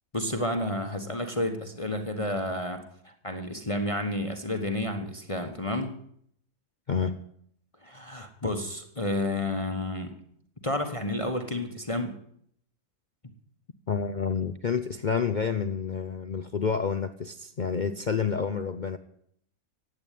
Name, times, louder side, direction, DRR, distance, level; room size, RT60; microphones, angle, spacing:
voice 1, 0.1-6.0 7.8-10.2 10.6-12.2 13.2-13.3, left 1 dB, 25° left, 5 dB, 1.3 m, -31 dB
voice 2, 6.9-7.2 13.9-19.0, left 6 dB, 45° left, 9 dB, 0.6 m, -29 dB
15.5 x 8.9 x 9.3 m, 0.68 s
omnidirectional pair, 1.6 m